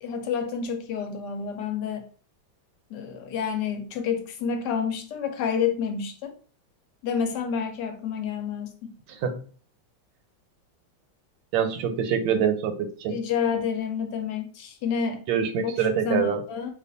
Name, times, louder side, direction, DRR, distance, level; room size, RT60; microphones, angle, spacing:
voice 1, 0.0-2.1 2.9-6.3 7.0-9.0 13.1-15.2 15.6-16.7, left 7 dB, 75° left, 1.1 m, -29 dB
voice 2, 11.5-13.2 15.3-16.4, right 7 dB, 85° right, 1.3 m, -25 dB
2.7 x 2.4 x 3.8 m
omnidirectional pair, 2.0 m